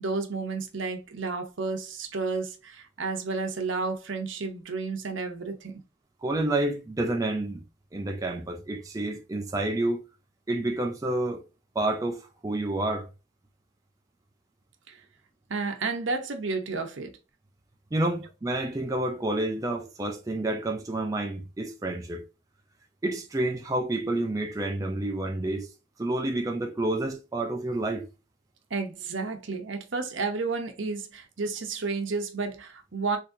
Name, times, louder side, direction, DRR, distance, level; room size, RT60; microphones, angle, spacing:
voice 1, 0.0-5.8 14.9-15.0 15.5-17.1 28.7-33.2, right 4 dB, 70° right, 0.8 m, -31 dB
voice 2, 6.2-7.6 7.9-10.0 10.5-11.4 11.8-13.1 17.9-22.3 23.0-25.7 26.0-28.1, right 2 dB, 15° right, 0.4 m, -29 dB
3.7 x 2.7 x 2.6 m
head